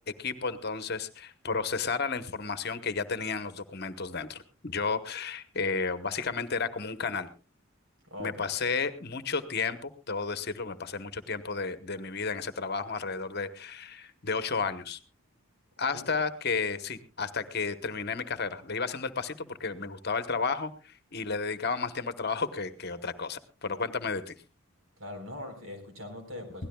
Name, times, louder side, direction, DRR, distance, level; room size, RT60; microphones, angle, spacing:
voice 1, 0.2-7.3 8.2-15.0 15.8-24.3, left 4 dB, 50° left, 11 dB, 1.0 m, -32 dB
voice 2, 8.0-8.4 15.9-16.0 25.0-26.7, left 1 dB, 70° right, 5 dB, 4.3 m, -41 dB
23.0 x 17.0 x 2.3 m, 0.33 s
head